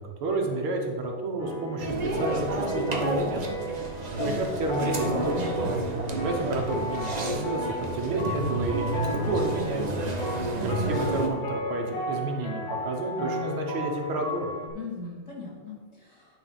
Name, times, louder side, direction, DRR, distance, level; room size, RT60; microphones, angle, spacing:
voice 1, 0.0-3.5 4.1-5.3 6.1-9.8 10.5-14.5, right 2 dB, 85° right, 2 dB, 2.0 m, -30 dB
sound 1, 1.4-14.7, left 1 dB, 65° left, 2.1 m, -35 dB
sound 2, 1.8-11.3, right 2 dB, 65° right, 0.4 m, -30 dB
voice 2, 5.3-5.8 10.4-10.7 14.7-16.4, left 3 dB, 30° left, -5 dB, 2.3 m, -40 dB
10.0 x 4.1 x 5.6 m, 1.5 s
omnidirectional pair, 2.3 m